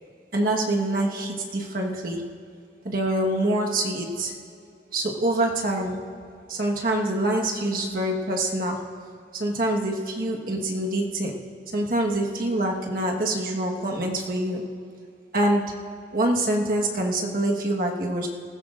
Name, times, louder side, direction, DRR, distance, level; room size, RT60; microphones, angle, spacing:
voice 1, 0.3-2.2 2.8-4.3 4.9-5.9 6.5-8.8 9.3-11.3 11.7-14.6 15.3-15.6 16.1-18.3, right 1 dB, 50° right, 0 dB, 1.5 m, -25 dB
19.5 x 15.0 x 2.6 m, 2.5 s
head